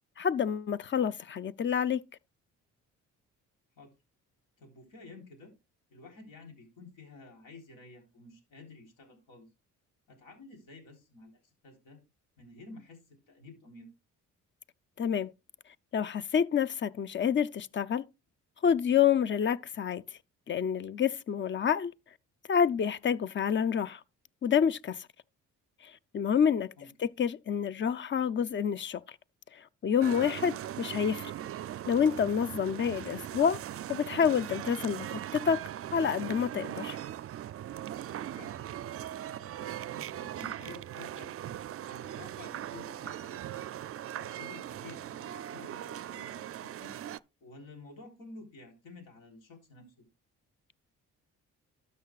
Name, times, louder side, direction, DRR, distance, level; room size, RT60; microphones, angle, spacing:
voice 1, 0.2-2.0 15.0-15.3 15.9-18.0 18.6-20.0 20.5-21.9 22.5-24.0 24.4-25.0 26.1-26.7 27.0-29.0 29.5-31.3 31.9-33.6 33.9-35.6 35.9-37.0, left 7 dB, 35° left, 0.6 m, -28 dB
voice 2, 4.6-5.5 5.9-9.5 10.1-12.0 12.4-13.9 26.8-26.9 38.3-38.7 39.4-41.3 41.9-43.6 44.2-46.9 47.4-50.1, left 3 dB, 80° left, 3.9 m, -51 dB
sound 1, 30.0-47.2, right 11 dB, 45° right, 0.4 m, -40 dB
12.5 x 6.7 x 2.4 m
cardioid pair, 75°, 32 cm